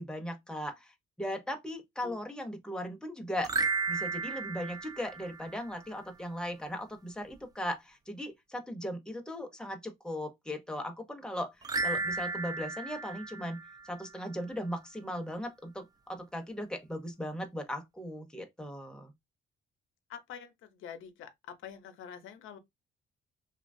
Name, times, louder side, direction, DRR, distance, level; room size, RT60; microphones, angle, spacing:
voice 1, 0.0-3.5 3.9-19.1, equal, 5° left, 0.7 m, -38 dB
sound 1, 3.4-5.9 11.6-14.2, right 3 dB, 20° right, 0.3 m, -34 dB
voice 2, 20.1-22.6, left 8 dB, 80° left, 0.7 m, -46 dB
2.8 x 2.3 x 2.5 m
cardioid pair, 90°, 20 cm